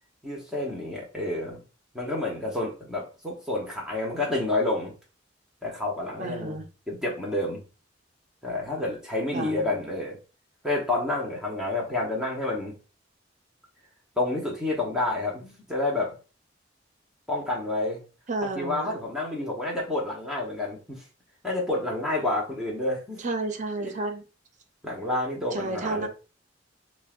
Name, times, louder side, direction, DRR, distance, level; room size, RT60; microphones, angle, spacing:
voice 1, 0.2-1.6 1.9-4.9 5.6-7.6 8.4-10.2 10.6-12.7 14.2-16.1 17.3-18.0 18.5-21.0 21.4-23.2 23.8-23.9 24.8-26.1, left 2 dB, 5° right, 0.9 m, -29 dB
voice 2, 6.2-6.6 9.3-9.6 18.3-18.9 23.2-24.2 25.5-26.1, right 2 dB, 40° right, 0.6 m, -31 dB
6.3 x 2.1 x 2.4 m
head